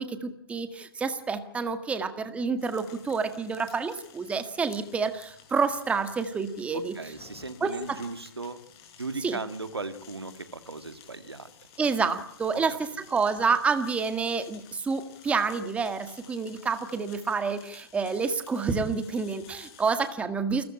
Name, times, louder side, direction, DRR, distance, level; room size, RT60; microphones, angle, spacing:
voice 1, 0.0-6.9 7.6-8.0 9.2-9.4 11.8-12.7 13.1-20.6, right 5 dB, 10° right, 9 dB, 1.8 m, -28 dB
sound 1, 2.6-20.1, left 8 dB, 35° left, 6.4 m, -53 dB
voice 2, 6.7-8.6 9.0-11.5 12.5-12.6, right 3 dB, 90° right, 10 dB, 2.3 m, -37 dB
28.5 x 14.0 x 8.8 m, 0.69 s
figure-of-eight pair, 130°, 13 cm